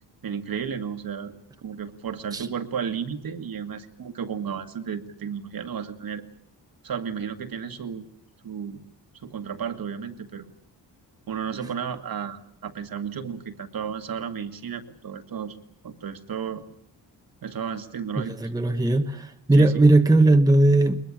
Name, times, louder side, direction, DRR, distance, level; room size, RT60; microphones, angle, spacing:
voice 1, 0.2-1.3 1.6-6.2 6.8-8.1 8.4-8.8 9.2-10.5 11.3-15.6 15.8-16.6 17.4-18.3 19.6-19.8, right 7 dB, 55° right, 8 dB, 1.9 m, -33 dB
voice 2, 18.2-21.0, right 2 dB, 10° right, 7 dB, 1.0 m, -18 dB
22.0 x 21.5 x 8.8 m, 0.64 s
wide cardioid pair, 140°, 41 cm